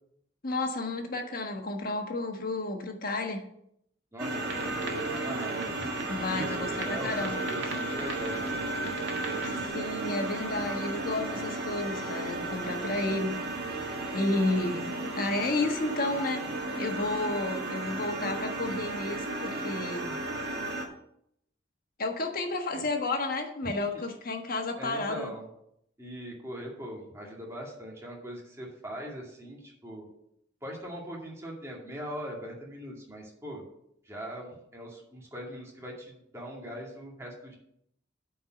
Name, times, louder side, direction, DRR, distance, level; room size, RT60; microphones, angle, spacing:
voice 1, 0.4-3.4 6.1-7.4 9.4-13.4 14.1-16.4 16.8-20.2 22.0-25.3, left 2 dB, 50° left, 4 dB, 1.4 m, -32 dB
voice 2, 4.1-5.9 6.3-9.7 22.7-22.8 23.6-24.0 24.8-25.4 26.0-30.1 30.6-33.6 34.1-37.6, equal, 15° right, -3 dB, 2.3 m, -41 dB
sound 1, 4.2-20.8, right 2 dB, 55° right, 1.7 m, -34 dB
sound 2, 4.5-9.7, right 3 dB, 80° right, 1.8 m, -42 dB
8.9 x 4.7 x 7.6 m, 0.75 s
head